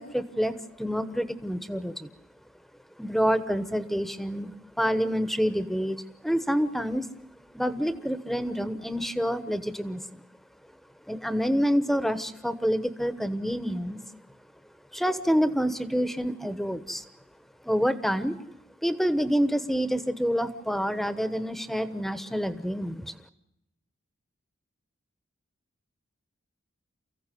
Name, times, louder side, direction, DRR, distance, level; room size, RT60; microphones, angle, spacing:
voice 1, 0.0-2.1 3.0-7.1 7.5-10.2 11.1-14.0 14.9-17.0 17.6-18.4 18.8-23.1, equal, ahead, 13 dB, 1.0 m, -27 dB
29.5 x 15.5 x 9.3 m, 0.85 s
head